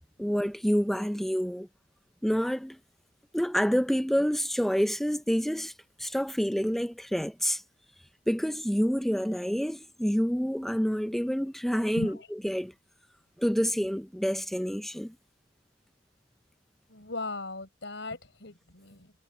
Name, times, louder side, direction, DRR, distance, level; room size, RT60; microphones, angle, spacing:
voice 1, 0.2-1.7 2.2-2.8 3.3-5.7 6.0-7.6 8.3-12.7 13.4-15.1, equal, ahead, 0.4 m, -28 dB
voice 2, 11.9-12.3 16.9-19.1, left 2 dB, 70° left, 6.9 m, -38 dB
head